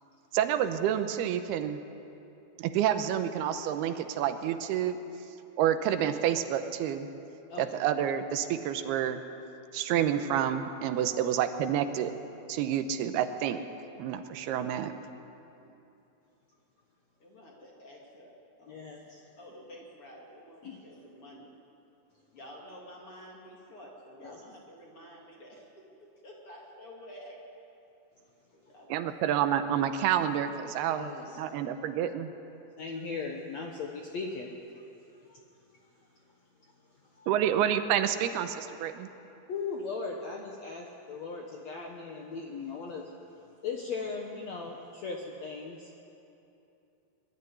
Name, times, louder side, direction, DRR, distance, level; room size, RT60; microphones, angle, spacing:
voice 1, 0.3-1.8 2.6-5.0 5.6-7.1 7.6-9.2 9.7-12.1 12.5-13.6 14.0-14.9 28.9-31.1 31.4-32.3 37.3-39.1, right 10 dB, 80° right, 9 dB, 2.8 m, -28 dB
voice 2, 17.2-18.8 19.4-21.5 22.3-27.4 28.5-29.0, equal, 40° left, -2 dB, 2.9 m, -50 dB
voice 3, 18.7-19.3 20.6-20.8 24.2-24.4 30.9-31.4 32.8-34.5 35.3-35.4 37.1-37.3 39.5-43.2 43.6-45.9, left 4 dB, 65° left, 1 dB, 1.7 m, -38 dB
22.5 x 12.0 x 9.7 m, 2.8 s
omnidirectional pair, 4.7 m